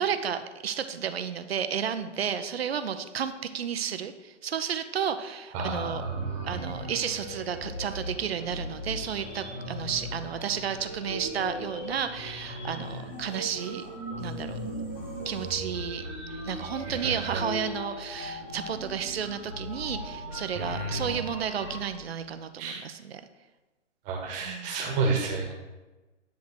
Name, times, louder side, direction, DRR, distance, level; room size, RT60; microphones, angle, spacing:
voice 1, 0.0-6.0 6.4-13.9 14.2-14.6 15.2-16.0 16.4-23.2 24.4-24.8, right 8 dB, 55° right, 10 dB, 0.8 m, -32 dB
voice 2, 5.5-6.5 16.9-17.4 20.5-21.1 22.6-22.8 24.0-25.5, right 3 dB, 20° right, 0 dB, 1.5 m, -31 dB
sound 1, 5.8-21.8, equal, 10° left, 0.4 m, -38 dB
10.5 x 3.7 x 6.3 m, 1.2 s
figure-of-eight pair, 130°, 36 cm